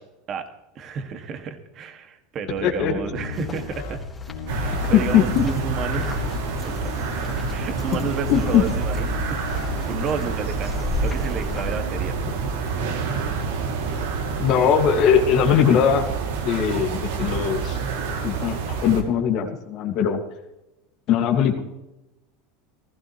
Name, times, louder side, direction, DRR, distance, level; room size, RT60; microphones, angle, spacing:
voice 1, 0.7-4.0 4.5-6.4 6.6-7.1 7.5-9.4 9.9-12.5 12.9-13.4 13.9-14.1, right 6 dB, 40° right, 6 dB, 2.2 m, -32 dB
sound 1, 2.5-4.0 4.3-5.5 6.1-6.4 6.7-8.8 9.1-10.3 10.9-11.2 11.5-12.1, left 5 dB, 90° left, 2.1 m, -37 dB
voice 2, 2.6-2.9 5.1-5.4 8.3-8.6 14.4-16.0 16.4-17.8 18.2-20.2 21.1-21.6, left 8 dB, 50° left, 3 dB, 2.1 m, -20 dB
sound 2, 3.3-11.8, left 4 dB, 15° left, 3.4 m, -35 dB
sound 3, 4.5-19.0, right 4 dB, 80° right, 2.8 m, -28 dB
16.5 x 15.0 x 3.2 m, 0.95 s
supercardioid pair, 110°, 0 cm